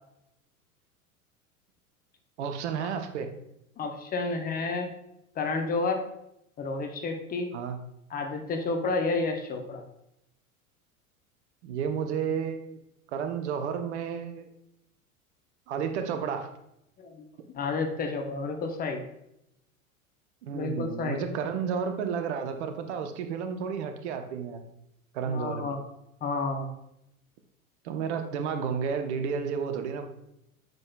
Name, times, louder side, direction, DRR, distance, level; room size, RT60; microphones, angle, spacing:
voice 1, 2.4-3.3 7.5-7.8 11.6-12.8 13.1-14.5 15.7-16.5 20.4-24.6 25.1-25.8 27.8-30.1, right 6 dB, 50° right, 7 dB, 0.9 m, -31 dB
voice 2, 3.8-4.9 5.4-6.0 6.6-7.5 8.1-9.8 17.0-17.1 17.5-19.0 20.5-21.2 25.3-25.8 26.2-26.7, left 3 dB, 20° left, 4 dB, 0.8 m, -30 dB
7.8 x 7.5 x 2.2 m, 0.81 s
figure-of-eight pair, 85°, 43 cm